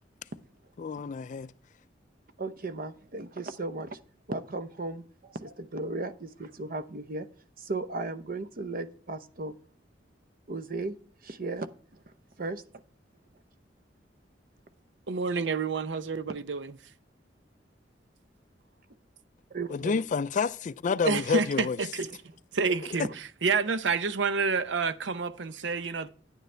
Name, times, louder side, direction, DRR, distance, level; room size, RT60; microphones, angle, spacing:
voice 1, 0.8-1.5 19.7-21.8, left 5 dB, 45° left, 0.3 m, -29 dB
voice 2, 2.4-4.0 4.3-7.3 7.6-9.5 10.5-11.0 11.2-11.7 12.4-12.6 19.5-20.0, right 2 dB, 50° right, 0.8 m, -35 dB
voice 3, 15.1-16.8 21.0-22.1 22.5-26.1, right 4 dB, 90° right, 0.7 m, -29 dB
10.5 x 9.2 x 3.3 m
head